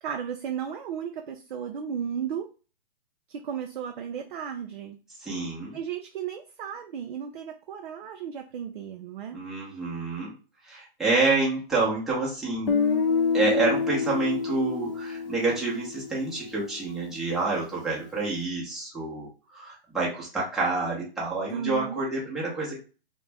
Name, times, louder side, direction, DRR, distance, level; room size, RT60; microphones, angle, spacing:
voice 1, 0.0-2.5 3.3-5.0 5.7-9.4 21.5-22.0, right 8 dB, 55° right, 4 dB, 0.4 m, -34 dB
voice 2, 5.2-5.8 9.3-10.3 10.7-12.7 13.3-19.3 19.5-22.8, right 3 dB, ahead, -7 dB, 0.6 m, -28 dB
Guitar, 12.7-16.6, left 5 dB, 65° left, 0.7 m, -27 dB
2.4 x 2.1 x 3.2 m, 0.35 s
hypercardioid pair, 140°, 31 cm